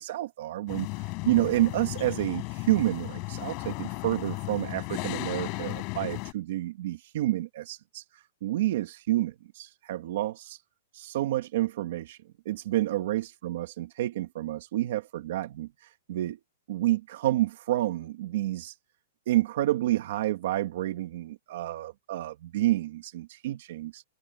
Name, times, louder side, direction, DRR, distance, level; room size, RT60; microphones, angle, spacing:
voice 1, 0.0-8.0 8.4-10.6 10.9-12.2 12.5-15.7 16.1-16.4 16.7-18.7 19.3-24.0, right 15 dB, 55° right, 1.8 m, -29 dB
sound 1, 0.7-6.3, left 30 dB, 30° left, 6.2 m, -35 dB
hypercardioid pair, 170°, 0 cm